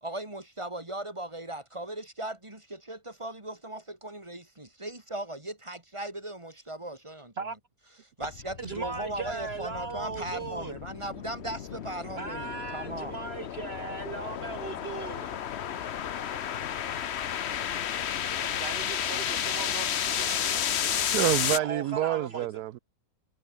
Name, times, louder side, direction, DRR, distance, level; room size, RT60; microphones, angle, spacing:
voice 1, 0.0-7.6 8.2-13.1, right 1 dB, 20° right, 3.1 m, -38 dB
sound 1, 8.2-21.6, left 9 dB, 50° left, 1.0 m, -32 dB
voice 2, 8.6-10.7 12.2-15.3 18.4-21.1 21.5-22.5, right 5 dB, 50° right, 1.1 m, -38 dB
voice 3, 21.1-22.8, right 14 dB, 90° right, 1.2 m, -28 dB
omnidirectional pair, 1.6 m